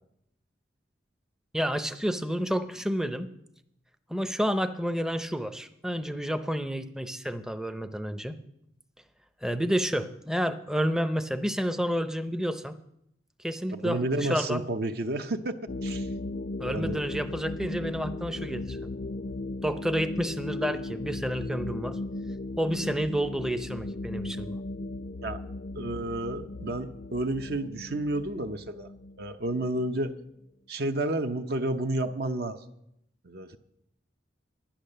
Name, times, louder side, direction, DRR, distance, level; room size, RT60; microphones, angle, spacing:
voice 1, 1.5-3.3 4.1-8.4 9.4-12.8 13.4-14.6 16.6-18.9 19.6-22.0 22.6-24.6, equal, 5° right, 9 dB, 0.5 m, -30 dB
voice 2, 13.7-16.1 16.6-17.0 25.2-25.4 25.8-28.9 29.2-30.2 30.7-32.6 33.2-33.6, right 1 dB, 55° right, 7 dB, 0.7 m, -31 dB
sound 1, 15.7-30.0, left 2 dB, 50° left, 0.4 m, -37 dB
11.0 x 10.5 x 6.7 m, 0.80 s
head